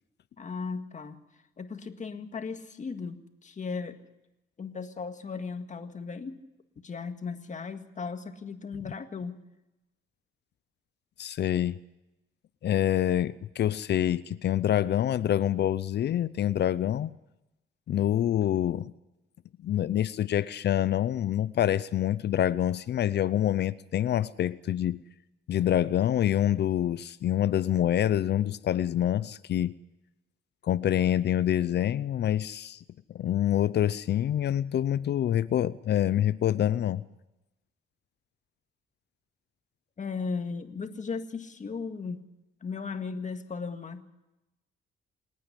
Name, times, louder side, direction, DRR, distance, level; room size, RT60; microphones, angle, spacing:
voice 1, 0.4-1.2 1.6-4.0 4.6-6.4 6.8-9.4 40.0-42.3 42.6-44.0, left 5 dB, 40° left, 1.9 m, -36 dB
voice 2, 11.2-11.8 12.6-17.1 17.9-18.9 19.6-25.0 25.5-29.7 30.6-32.8 33.1-37.0, left 11 dB, 60° left, 0.6 m, -26 dB
27.5 x 9.5 x 9.9 m
cardioid pair, 90°, 20 cm